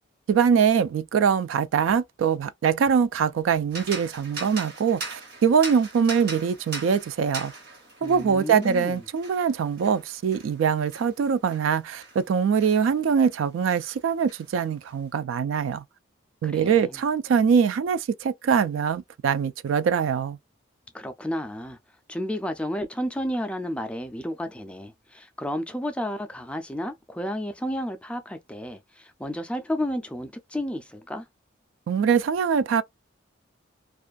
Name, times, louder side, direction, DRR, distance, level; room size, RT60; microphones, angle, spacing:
voice 1, 0.3-7.5 8.0-15.8 16.4-20.4 31.9-32.8, right 6 dB, 80° right, 0.3 m, -23 dB
sound 1, 3.7-13.4 13.7-15.0, right 3 dB, 55° right, 1.1 m, -40 dB
voice 2, 8.0-9.0 16.4-16.7 20.9-21.8 22.1-31.3, equal, 5° left, 0.3 m, -32 dB
2.5 x 2.3 x 2.2 m
head